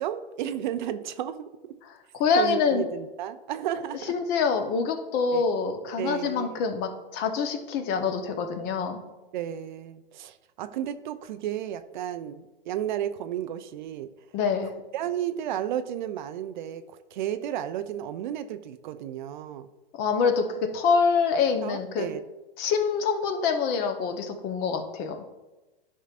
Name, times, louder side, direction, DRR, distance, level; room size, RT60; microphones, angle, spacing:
voice 1, 0.0-1.5 2.3-4.1 5.3-5.4 6.0-6.5 9.3-14.1 14.9-19.7 21.6-22.2, right 11 dB, 50° right, 11 dB, 0.6 m, -33 dB
voice 2, 2.1-2.8 4.1-9.0 14.3-14.7 20.0-22.1 22.6-25.2, left 5 dB, 35° left, 6 dB, 1.0 m, -25 dB
12.0 x 5.5 x 2.5 m, 1.1 s
hypercardioid pair, 115°, 30 cm